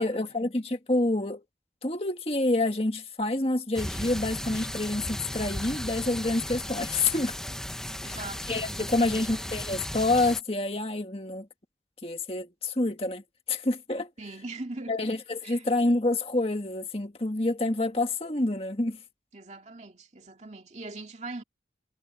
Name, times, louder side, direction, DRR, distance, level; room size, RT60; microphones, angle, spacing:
voice 1, 0.0-1.4 1.8-7.3 8.5-11.5 12.0-13.2 13.5-14.1 14.9-19.0, left 2 dB, 35° left, 1.8 m, -27 dB
sound 1, 3.7-10.4, left 1 dB, 5° left, 1.2 m, -36 dB
voice 2, 8.0-9.2 14.2-15.1 15.4-15.7 19.3-21.4, right 2 dB, 40° right, 2.4 m, -41 dB
head